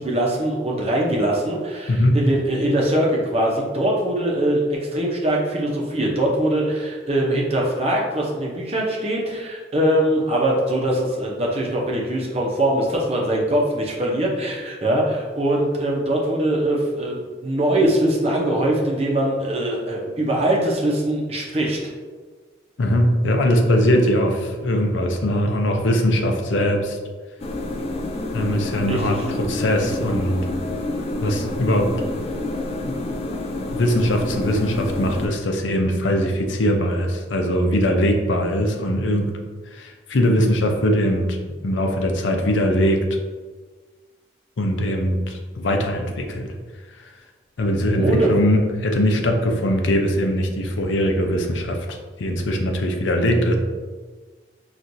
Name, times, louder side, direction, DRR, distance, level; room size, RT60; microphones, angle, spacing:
voice 1, 0.0-21.8 28.9-29.2 48.0-48.4, right 1 dB, 30° right, -2 dB, 0.7 m, -22 dB
voice 2, 1.9-2.2 22.8-27.0 28.3-30.5 31.2-31.9 32.8-33.0 33.7-39.3 39.7-41.4 41.6-43.1 44.6-46.5 47.6-51.8 52.2-53.6, equal, 85° left, 3 dB, 0.6 m, -21 dB
sound 1, 27.4-35.3, left 1 dB, 30° left, 0.3 m, -28 dB
6.0 x 2.5 x 2.6 m, 1.4 s
head